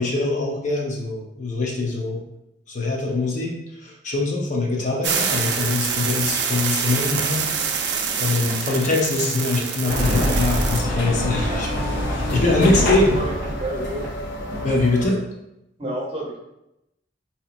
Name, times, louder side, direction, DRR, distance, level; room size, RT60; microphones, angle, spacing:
voice 1, 0.0-2.2 2.7-11.7 12.1-13.2 14.6-15.2, left 2 dB, 45° left, -1 dB, 0.6 m, -23 dB
sound 1, 5.0-10.8, right 6 dB, 75° right, 0.4 m, -25 dB
sound 2, 6.2-14.4, right 1 dB, 10° left, 1.1 m, -41 dB
sound 3, 9.9-15.1, left 1 dB, 85° left, 0.6 m, -25 dB
voice 2, 12.6-13.3 13.6-14.0 15.8-16.4, right 1 dB, 35° right, -3 dB, 0.8 m, -30 dB
4.2 x 2.9 x 2.4 m, 0.87 s
head